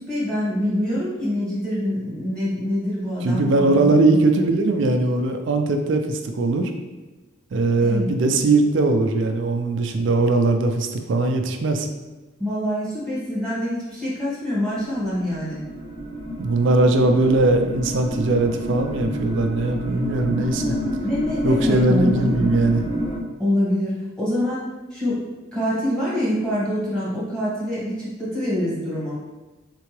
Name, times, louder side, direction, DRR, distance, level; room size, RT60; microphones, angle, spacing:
voice 1, 0.0-4.2 7.8-8.1 12.4-15.6 20.4-22.5 23.4-24.6 24.9-25.2 25.5-29.2, equal, 5° left, -9 dB, 1.5 m, -25 dB
voice 2, 3.2-6.7 7.5-11.9 16.4-20.8 21.4-22.8, right 2 dB, 60° right, 5 dB, 0.4 m, -20 dB
sound 1, 14.7-23.2, equal, 25° left, 1.1 m, -29 dB
3.7 x 3.3 x 3.1 m, 1.2 s
head